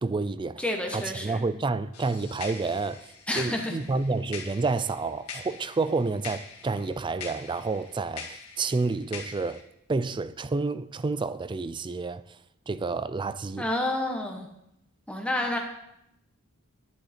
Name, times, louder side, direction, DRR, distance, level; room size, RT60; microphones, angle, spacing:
voice 1, 0.0-0.6 0.9-12.4 12.7-13.7, right 3 dB, 20° right, 0.3 m, -29 dB
voice 2, 0.6-1.4 3.3-3.7 13.6-14.5 15.1-15.6, left 1 dB, 5° left, 1.1 m, -29 dB
sound 1, 1.9-9.6, left 5 dB, 75° left, 2.0 m, -43 dB
10.5 x 10.5 x 4.3 m
head